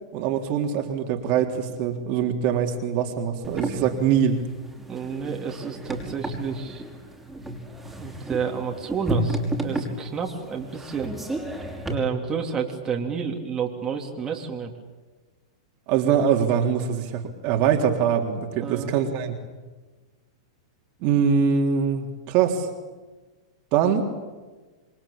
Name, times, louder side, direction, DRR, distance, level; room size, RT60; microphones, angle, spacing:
voice 1, 0.1-4.4 15.9-19.4 21.0-22.7 23.7-24.0, right 7 dB, 45° right, 3 dB, 3.6 m, -23 dB
sound 1, 3.4-12.0, right 1 dB, 5° right, 5.7 m, -32 dB
voice 2, 4.8-6.8 8.0-11.1 11.8-14.7 18.6-19.0, right 6 dB, 20° right, 1 dB, 3.6 m, -30 dB
27.0 x 23.5 x 8.8 m, 1.3 s
hypercardioid pair, 115°, 3 cm